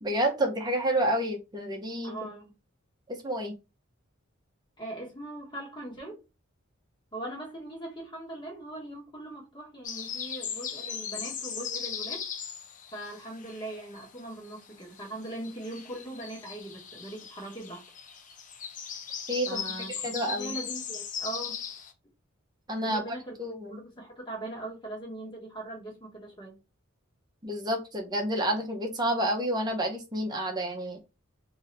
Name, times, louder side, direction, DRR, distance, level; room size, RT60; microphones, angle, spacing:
voice 1, 0.0-2.1 3.1-3.5 19.3-19.6 20.0-20.5 22.7-23.8 27.4-31.0, right 1 dB, 20° right, 0.8 m, -29 dB
voice 2, 2.0-2.5 4.8-6.2 7.1-12.3 12.9-17.8 19.5-21.6 22.8-23.3 23.7-26.6, right 1 dB, 20° left, 1.4 m, -40 dB
sound 1, 9.8-14.2 14.4-21.9, left 7 dB, 40° left, 0.6 m, -38 dB
3.6 x 2.8 x 3.3 m
head